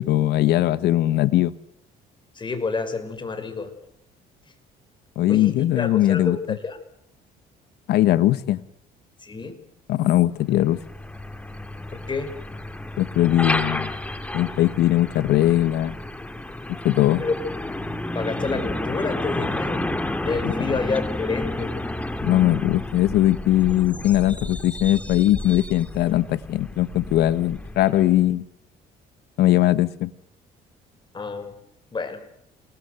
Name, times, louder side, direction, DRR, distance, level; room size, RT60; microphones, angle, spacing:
voice 1, 0.0-1.5 5.2-6.4 7.9-8.6 9.9-10.8 13.0-13.9 14.3-16.0 16.8-17.2 22.2-28.4 29.4-30.1, left 14 dB, 75° left, 15 dB, 1.4 m, -20 dB
voice 2, 2.4-3.7 5.3-6.8 9.2-9.6 11.9-12.3 17.2-17.3 18.1-19.9 20.2-21.7 31.1-31.5 31.9-32.2, left 4 dB, 30° left, 8 dB, 5.5 m, -29 dB
Truck, 10.5-28.2, left 1 dB, 10° left, 2.3 m, -31 dB
29.0 x 20.0 x 8.1 m, 0.72 s
cardioid pair, 110°, 17 cm